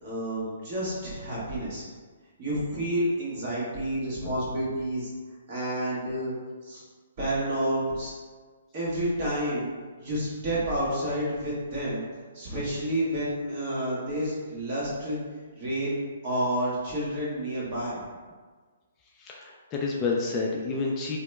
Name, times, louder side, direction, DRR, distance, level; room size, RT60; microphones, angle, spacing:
voice 1, 0.0-1.8 2.4-5.1 5.5-6.3 6.6-6.8 7.2-8.1 8.7-9.7 10.0-12.0 12.3-15.2 15.6-16.0 16.2-18.0, right 1 dB, 40° right, -7 dB, 1.3 m, -29 dB
voice 2, 19.2-21.2, left 4 dB, 25° left, -2 dB, 0.3 m, -29 dB
2.8 x 2.1 x 3.4 m, 1.5 s
hypercardioid pair, 140°, 0 cm